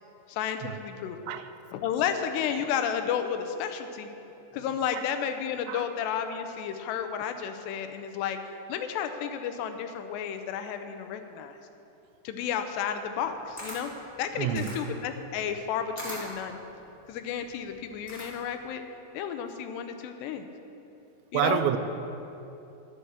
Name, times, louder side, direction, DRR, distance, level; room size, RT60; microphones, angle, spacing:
voice 1, 0.3-1.2 1.7-4.1 4.5-8.4 8.7-11.6 12.2-13.9 14.2-16.6 17.1-18.8 19.1-20.5 21.3-21.6, left 8 dB, 80° left, 7 dB, 2.7 m, -32 dB
Camera, 13.2-18.6, equal, 5° left, 1.8 m, -43 dB
voice 2, 14.4-14.8 21.3-21.8, right 11 dB, 90° right, 10 dB, 2.9 m, -28 dB
11.5 x 10.0 x 6.5 m, 2.9 s
omnidirectional pair, 5.0 m